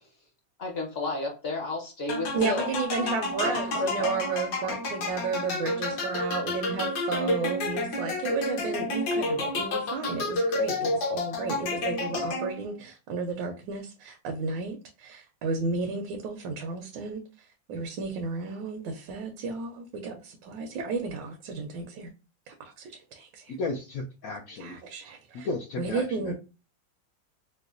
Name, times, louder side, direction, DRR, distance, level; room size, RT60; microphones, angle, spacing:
voice 1, 0.6-2.7 3.4-4.1, left 2 dB, 45° left, 0 dB, 0.8 m, -32 dB
sound 1, 2.1-12.8, left 2 dB, 65° left, 1.3 m, -30 dB
voice 2, 2.3-22.1 22.5-23.6 24.6-25.5 25.8-26.3, right 4 dB, 80° right, 3 dB, 1.2 m, -33 dB
voice 3, 23.5-24.8 25.4-26.3, left 3 dB, 80° left, 0 dB, 0.8 m, -34 dB
4.7 x 2.1 x 2.4 m, 0.32 s
omnidirectional pair, 2.0 m